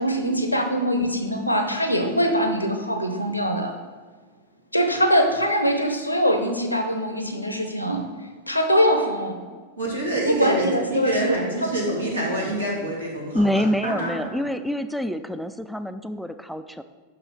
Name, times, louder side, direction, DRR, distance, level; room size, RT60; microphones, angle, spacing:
voice 1, 0.0-3.7 4.7-8.0 8.5-9.4 10.2-11.7, equal, 85° left, 6 dB, 0.9 m, -23 dB
voice 2, 9.8-14.3, right 2 dB, 85° right, -3 dB, 2.1 m, -26 dB
voice 3, 13.3-16.8, equal, ahead, 10 dB, 0.3 m, -26 dB
5.9 x 5.5 x 6.2 m, 1.5 s
figure-of-eight pair, 90°, 0 cm